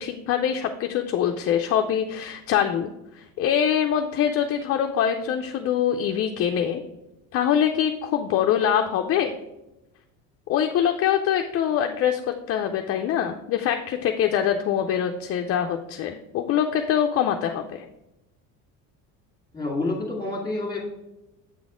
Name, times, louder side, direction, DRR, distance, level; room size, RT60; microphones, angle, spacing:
voice 1, 0.0-2.9 3.2-6.8 7.3-9.4 10.5-12.2 12.5-17.8, left 9 dB, 45° left, 4 dB, 0.5 m, -24 dB
voice 2, 19.5-20.8, left 2 dB, 10° left, -1 dB, 1.9 m, -28 dB
8.1 x 4.1 x 4.9 m, 0.96 s
cardioid pair, 160°, 34 cm